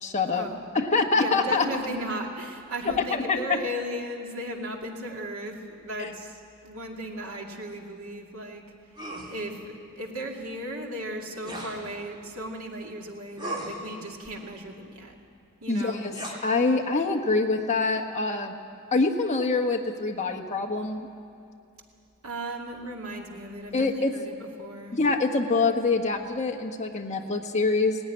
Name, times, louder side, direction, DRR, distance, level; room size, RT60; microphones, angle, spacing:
voice 1, 0.0-0.5 0.7-1.6 3.1-3.6 6.0-6.1 15.7-16.1 16.4-18.6 18.9-21.1 23.7-24.1 24.9-28.0, left 3 dB, 35° left, 2 dB, 1.4 m, -25 dB
voice 2, 1.1-8.6 9.3-15.1 15.6-16.0 22.2-24.3 24.6-25.0, right 1 dB, 80° right, 1 dB, 2.5 m, -36 dB
sound 1, 9.0-9.3 11.4-11.8 13.4-13.8 16.1-16.4, right 1 dB, 20° right, 3.2 m, -36 dB
18.0 x 15.0 x 9.9 m, 2.5 s
head